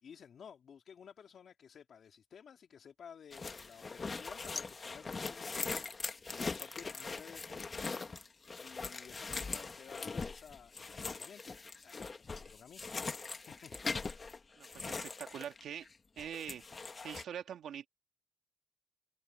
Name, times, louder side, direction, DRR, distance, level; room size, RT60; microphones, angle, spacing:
voice 1, 0.0-5.9 6.3-7.8 8.6-11.6 11.8-12.8 13.5-13.7, left 7 dB, 55° left, 2.3 m, -54 dB
sound 1, 3.3-15.9 16.2-17.2, left 4 dB, 30° left, 1.4 m, -41 dB
voice 2, 14.6-15.9 16.2-16.6 17.0-17.9, right 9 dB, 70° right, 2.8 m, -44 dB
cardioid pair, 90°, 0 cm